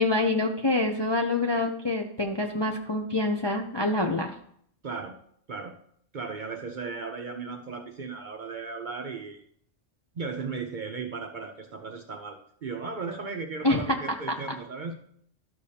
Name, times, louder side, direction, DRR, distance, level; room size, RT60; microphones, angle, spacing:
voice 1, 0.0-4.3 13.6-13.8, left 2 dB, 35° left, 2 dB, 0.4 m, -26 dB
voice 2, 4.8-5.2 5.5-5.7 6.1-9.4 10.2-15.0, right 4 dB, 50° right, 4 dB, 0.6 m, -36 dB
12.0 x 6.7 x 2.8 m, 0.65 s
omnidirectional pair, 1.3 m